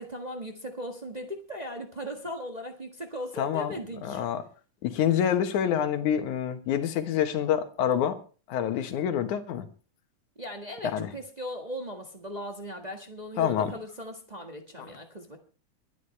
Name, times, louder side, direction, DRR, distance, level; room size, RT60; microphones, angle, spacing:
voice 1, 0.0-4.3 10.3-15.4, equal, 30° right, 3 dB, 0.7 m, -38 dB
voice 2, 3.4-3.7 4.0-4.4 4.8-8.2 8.5-9.7 10.9-11.1 13.4-13.7, left 9 dB, 80° left, 8 dB, 2.7 m, -27 dB
22.5 x 10.5 x 3.3 m, 0.37 s
omnidirectional pair, 3.4 m